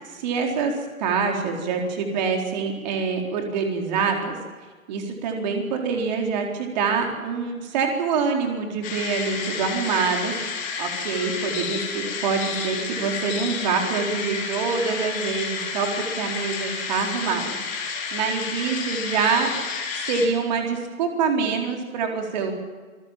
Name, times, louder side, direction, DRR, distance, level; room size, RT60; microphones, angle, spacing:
voice 1, 0.1-0.7 1.0-4.4 4.9-10.3 10.8-17.6 18.1-19.5 19.9-22.5, right 5 dB, 30° right, 2 dB, 4.3 m, -25 dB
sound 1, 8.8-20.3, left 5 dB, 20° left, 3.6 m, -30 dB
26.0 x 21.0 x 7.6 m, 1.5 s
figure-of-eight pair, 140°, 42 cm